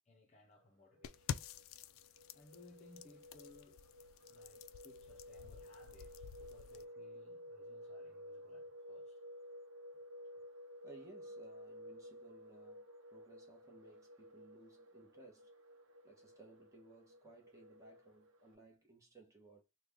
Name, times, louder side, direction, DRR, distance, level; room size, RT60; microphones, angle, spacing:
voice 1, 0.1-1.5 2.3-3.9 4.3-9.2, left 2 dB, 35° left, 0.7 m, -63 dB
sound 1, 0.8-18.5, equal, 75° right, 0.7 m, -54 dB
sound 2, 1.0-6.8, left 8 dB, 85° left, 0.3 m, -49 dB
voice 2, 10.8-12.9 13.1-15.5 16.0-19.6, right 2 dB, 15° right, 1.0 m, -60 dB
3.2 x 2.2 x 3.5 m
head